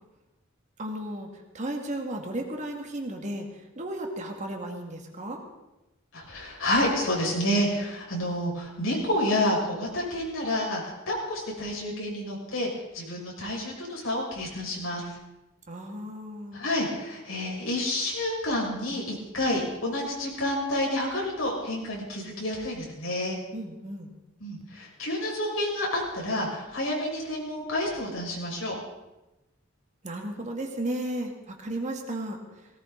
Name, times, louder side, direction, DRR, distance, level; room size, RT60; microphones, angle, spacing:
voice 1, 0.8-3.5 3.8-5.4 15.7-16.6 23.5-24.1 30.0-32.7, right 1 dB, 35° right, 2 dB, 2.2 m, -34 dB
voice 2, 6.1-12.7 12.9-15.1 16.5-23.4 24.4-28.8, left 1 dB, 80° left, -3 dB, 6.0 m, -29 dB
18.5 x 18.0 x 4.0 m, 1.0 s
head